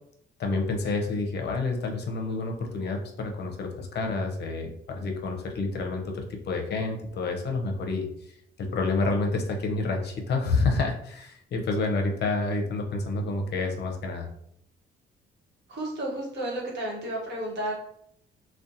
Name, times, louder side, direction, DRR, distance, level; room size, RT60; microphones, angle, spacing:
voice 1, 0.4-14.3, left 3 dB, 60° left, 2 dB, 0.5 m, -29 dB
voice 2, 15.7-17.8, right 1 dB, 60° right, -2 dB, 1.0 m, -32 dB
2.6 x 2.1 x 2.5 m, 0.71 s
cardioid pair, 90°, 20 cm